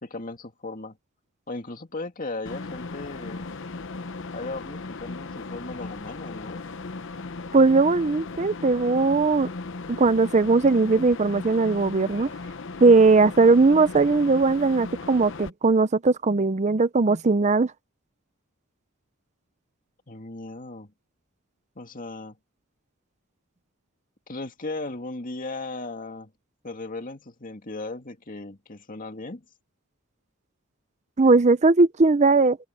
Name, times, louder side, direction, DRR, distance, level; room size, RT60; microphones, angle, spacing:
voice 1, 0.0-1.0 1.5-3.6 4.3-6.6 20.1-20.9 21.8-22.4 24.3-26.3 26.6-29.4, left 2 dB, 40° left, 2.3 m, -36 dB
sound 1, 2.4-15.5, left 3 dB, 60° left, 0.9 m, -37 dB
voice 2, 7.5-9.5 10.0-12.3 12.8-17.7 31.2-32.6, right 3 dB, 35° right, 0.6 m, -19 dB
open air
head